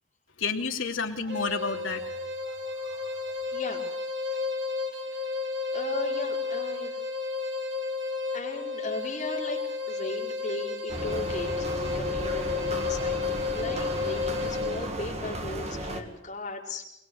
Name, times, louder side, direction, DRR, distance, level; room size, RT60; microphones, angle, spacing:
voice 1, 0.4-2.0 2.5-2.6 2.8-3.2, left 4 dB, 75° left, 2 dB, 3.0 m, -31 dB
sound 1, 1.3-14.9, left 4 dB, 60° right, 2.5 m, -32 dB
voice 2, 3.5-3.8 5.1-5.2 5.7-7.0 8.3-16.9, left 2 dB, 35° left, -1 dB, 4.7 m, -37 dB
sound 2, 10.9-16.0, right 1 dB, 30° right, 2.2 m, -34 dB
22.0 x 22.0 x 8.0 m, 0.82 s
head